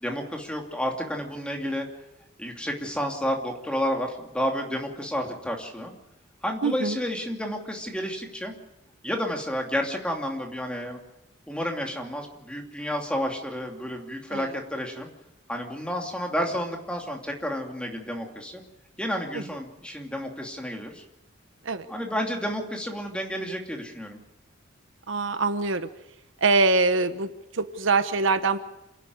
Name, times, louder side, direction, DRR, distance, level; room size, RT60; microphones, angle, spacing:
voice 1, 0.0-1.9 2.4-5.9 6.4-8.5 9.0-11.0 11.5-15.1 15.5-18.6 19.0-21.0 21.9-24.2, equal, 5° left, 1 dB, 2.8 m, -31 dB
voice 2, 6.6-7.0 14.3-14.5 19.3-19.4 21.6-21.9 25.1-25.9 26.4-28.6, right 3 dB, 70° right, 10 dB, 1.1 m, -24 dB
28.0 x 11.5 x 9.6 m, 0.94 s
head